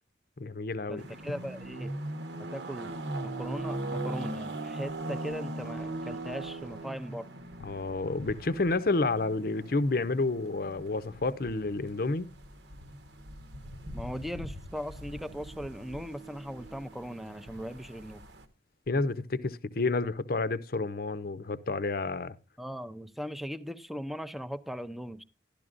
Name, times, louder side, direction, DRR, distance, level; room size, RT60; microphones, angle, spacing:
voice 1, 0.4-1.1 7.6-12.3 18.9-22.4, left 3 dB, 50° left, 0.6 m, -30 dB
voice 2, 0.9-1.9 2.4-7.3 13.9-18.2 22.6-25.2, equal, ahead, 0.5 m, -39 dB
sound 1, 1.0-18.5, right 1 dB, 70° right, 1.1 m, -40 dB
12.0 x 12.0 x 2.5 m
head